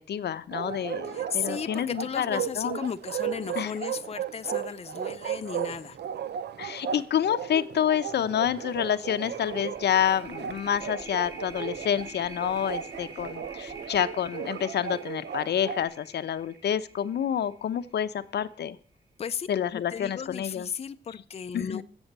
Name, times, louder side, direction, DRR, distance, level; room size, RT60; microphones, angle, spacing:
voice 1, 0.1-2.8 3.6-3.7 6.6-18.8 19.5-20.7 21.5-21.8, left 9 dB, 85° left, 11 dB, 0.8 m, -28 dB
Bark, 0.5-15.8, right 9 dB, 90° right, 0.8 m, -36 dB
voice 2, 1.0-6.0 19.2-21.8, left 7 dB, 35° left, 11 dB, 0.6 m, -35 dB
sound 1, 7.5-7.7 8.0-18.2, right 3 dB, 20° right, 4.8 m, -47 dB
15.5 x 7.1 x 6.7 m, 0.42 s
wide cardioid pair, 150°, 17 cm